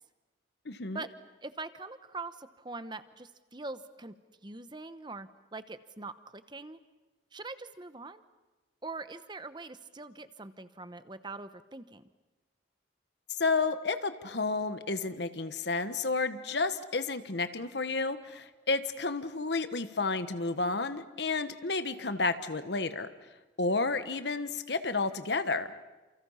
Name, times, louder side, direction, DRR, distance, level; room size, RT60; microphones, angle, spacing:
voice 1, 0.6-1.0 13.4-23.1 23.6-25.8, left 3 dB, 65° left, 11 dB, 1.3 m, -31 dB
voice 2, 1.4-4.1 4.4-6.8 7.3-8.2 8.8-12.0, right 3 dB, 25° right, 12 dB, 1.0 m, -43 dB
29.5 x 28.0 x 5.7 m, 1.2 s
head